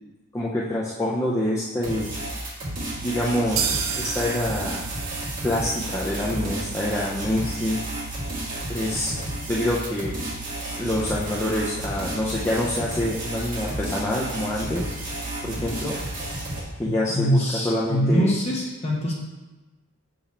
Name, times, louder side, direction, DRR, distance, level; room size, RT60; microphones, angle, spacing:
voice 1, 0.3-2.1 3.0-4.8 5.4-7.8 8.7-9.1 9.5-10.1 10.8-14.9 15.4-16.0 16.8-17.4 17.6-18.3, left 1 dB, 15° left, -6 dB, 0.6 m, -26 dB
sound 1, 1.8-16.6, right 1 dB, 40° right, 2.1 m, -32 dB
sound 2, 3.6-11.3 11.6-11.7 12.0-12.1 12.5-12.6, right 8 dB, 70° right, 0.5 m, -35 dB
voice 2, 16.9-19.1, equal, 30° left, -4 dB, 1.4 m, -23 dB
6.8 x 4.0 x 4.3 m, 1.2 s
head